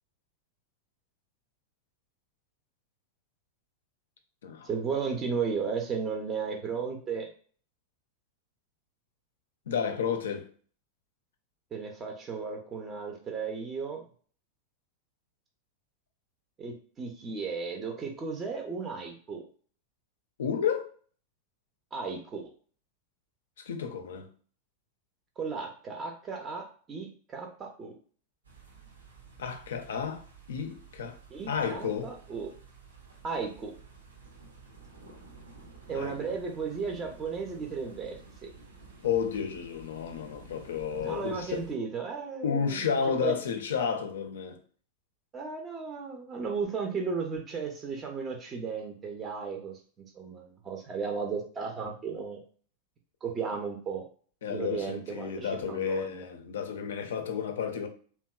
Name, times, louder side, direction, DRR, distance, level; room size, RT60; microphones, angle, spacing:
voice 1, 4.6-7.3 11.7-14.0 16.6-19.4 21.9-22.4 25.4-27.9 31.3-32.5 33.2-33.7 35.9-38.5 41.0-43.3 45.3-49.8 50.1-52.4 53.2-54.0 54.5-56.2, right 5 dB, 25° right, 0.5 m, -35 dB
voice 2, 9.7-10.5 20.4-20.9 23.7-24.3 29.4-30.2 30.5-31.2 31.5-32.1 35.9-36.1 39.0-41.6 42.4-44.6 54.4-57.9, left 7 dB, 65° left, 0.4 m, -31 dB
sound 1, 28.4-41.8, right 4 dB, 75° right, 0.5 m, -52 dB
2.8 x 2.1 x 2.2 m
figure-of-eight pair, 90°, 0 cm